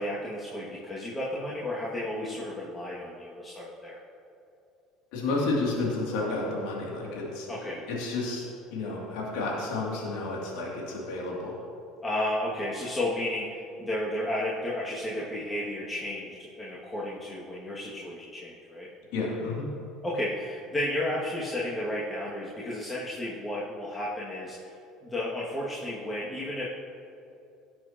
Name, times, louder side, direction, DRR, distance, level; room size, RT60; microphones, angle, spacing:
voice 1, 0.0-4.0 7.5-7.8 12.0-18.9 20.0-24.7 25.0-26.6, left 1 dB, 20° left, -6 dB, 2.0 m, -33 dB
voice 2, 5.1-7.5 7.9-11.5 19.1-19.7, left 3 dB, 70° left, -3 dB, 2.5 m, -31 dB
17.5 x 7.6 x 2.9 m, 2.7 s
hypercardioid pair, 70°, 0 cm